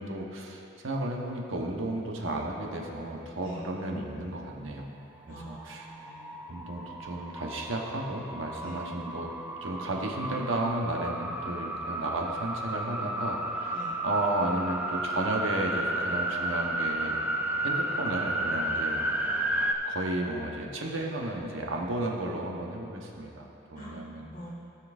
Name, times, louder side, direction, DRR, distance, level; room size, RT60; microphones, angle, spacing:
voice 1, 0.0-4.9 5.3-5.9 6.5-9.3 9.6-17.2 17.6-19.0 19.9-24.3, right 1 dB, 85° right, 0 dB, 1.1 m, -33 dB
voice 2, 3.4-3.7 5.3-6.8 8.5-8.9 13.7-14.0 23.7-24.5, equal, 45° left, -6 dB, 1.9 m, -45 dB
sound 1, 5.3-19.7, right 1 dB, 10° right, 0.4 m, -33 dB
17.0 x 5.8 x 2.6 m, 2.8 s
head